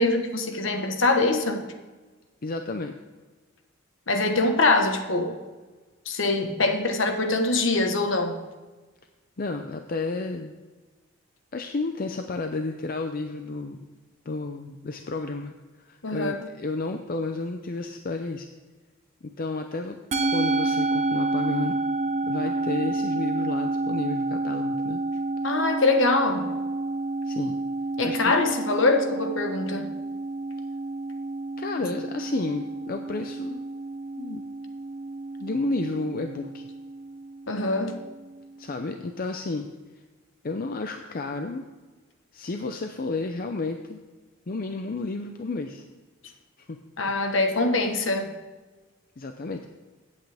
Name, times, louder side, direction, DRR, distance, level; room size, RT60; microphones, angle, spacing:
voice 1, 0.0-1.7 4.1-5.3 6.1-8.4 16.0-16.4 25.4-26.5 28.0-29.9 37.5-38.0 47.0-48.3, left 2 dB, 65° left, 5 dB, 1.2 m, -23 dB
voice 2, 2.4-2.9 9.4-10.5 11.5-13.8 14.3-18.5 19.4-20.0 20.3-21.7 22.2-25.0 27.2-27.6 28.0-28.3 31.6-33.6 34.2-34.4 35.4-36.6 38.6-39.7 40.4-41.7 42.3-44.0 44.5-45.8 46.6-46.8 49.2-49.7, left 3 dB, 45° left, 6 dB, 0.5 m, -31 dB
Musical instrument, 20.1-38.6, right 2 dB, 35° right, 0.7 m, -30 dB
15.5 x 8.3 x 3.4 m, 1.3 s
head